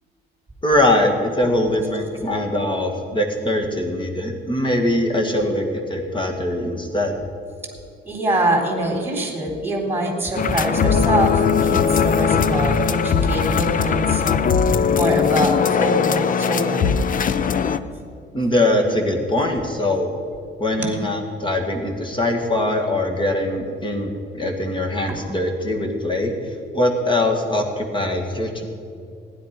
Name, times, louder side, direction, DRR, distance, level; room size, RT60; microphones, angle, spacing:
voice 1, 0.6-7.2 18.3-20.1 20.6-28.7, left 1 dB, 25° left, 2 dB, 2.1 m, -22 dB
voice 2, 8.0-14.4 14.9-17.0 20.8-20.9 25.1-25.2, right 1 dB, 10° right, 1 dB, 3.5 m, -24 dB
sound 1, 10.3-17.8, left 6 dB, 45° left, 0.6 m, -19 dB
15.5 x 10.5 x 5.2 m, 2.4 s
cardioid pair, 90°, 20 cm